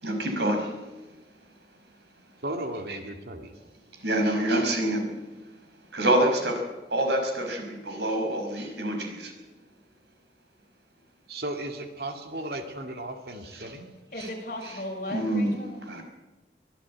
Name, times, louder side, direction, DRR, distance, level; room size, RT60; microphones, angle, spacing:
voice 1, 0.0-0.7 4.0-5.1 5.9-6.6 6.9-9.3 15.1-15.5 15.9-16.0, right 1 dB, 85° right, 4 dB, 5.5 m, -26 dB
voice 2, 2.4-3.5 11.3-13.9, right 1 dB, 65° right, 5 dB, 2.4 m, -35 dB
voice 3, 14.1-16.0, left 1 dB, 50° left, 0 dB, 6.1 m, -36 dB
23.5 x 14.5 x 8.9 m, 1.1 s
head